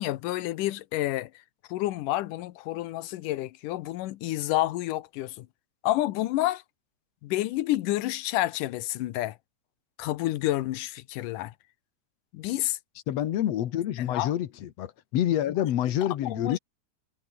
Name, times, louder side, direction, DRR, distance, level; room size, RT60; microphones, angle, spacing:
voice 1, 0.0-1.4 1.7-5.5 5.8-6.6 7.2-9.4 10.0-11.5 12.3-12.8 14.0-14.3 16.0-16.6, left 16 dB, 85° left, 2.5 m, -29 dB
voice 2, 13.1-16.6, left 11 dB, 60° left, 2.1 m, -27 dB
omnidirectional pair, 3.6 m